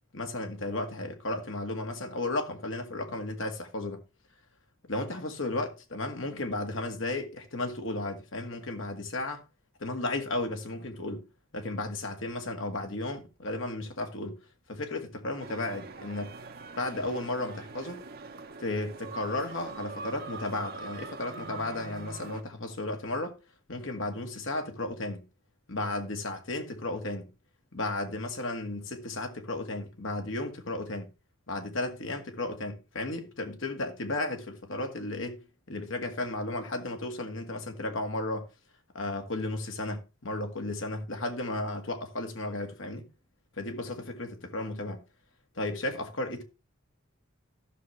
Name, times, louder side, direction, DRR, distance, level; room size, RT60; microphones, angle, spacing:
voice 1, 0.1-4.0 4.9-9.4 9.8-11.2 11.5-14.4 14.7-16.3 16.8-18.0 18.6-23.3 23.7-25.2 25.7-27.3 27.7-31.1 31.5-38.5 38.9-43.1 43.6-45.0 45.5-46.4, left 2 dB, 70° left, 1.9 m, -34 dB
sound 1, 15.4-22.4, right 3 dB, 50° right, 1.0 m, -43 dB
14.0 x 6.4 x 3.3 m
head